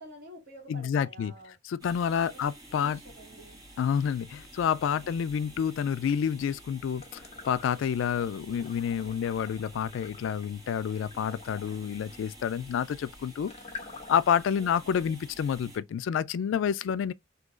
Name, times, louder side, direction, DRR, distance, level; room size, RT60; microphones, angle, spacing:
voice 1, 0.0-1.6 2.1-2.4 2.7-3.6 4.9-5.2 8.0-8.3 8.9-9.3 14.5-14.7 15.0-15.1, right 2 dB, 60° right, 1.6 m, -50 dB
voice 2, 0.7-1.3 1.6-3.0 3.8-13.5 14.1-17.1, left 8 dB, 80° left, 0.3 m, -29 dB
sound 1, 1.8-15.8, right 1 dB, 20° right, 1.5 m, -51 dB
sound 2, 7.0-8.1 8.5-14.4, left 4 dB, 35° left, 0.9 m, -48 dB
3.9 x 2.7 x 2.3 m
head